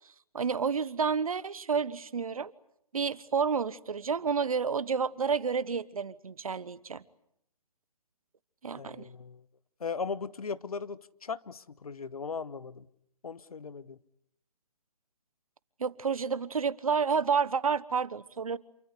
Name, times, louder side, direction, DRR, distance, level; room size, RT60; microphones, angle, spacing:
voice 1, 0.3-2.5 2.9-7.0 8.6-9.1 15.8-18.6, right 6 dB, 65° right, 1.2 m, -30 dB
voice 2, 8.8-9.4 9.8-12.9 13.2-14.0, left 5 dB, 70° left, 1.2 m, -38 dB
28.0 x 23.5 x 8.3 m
figure-of-eight pair, 140°, 20 cm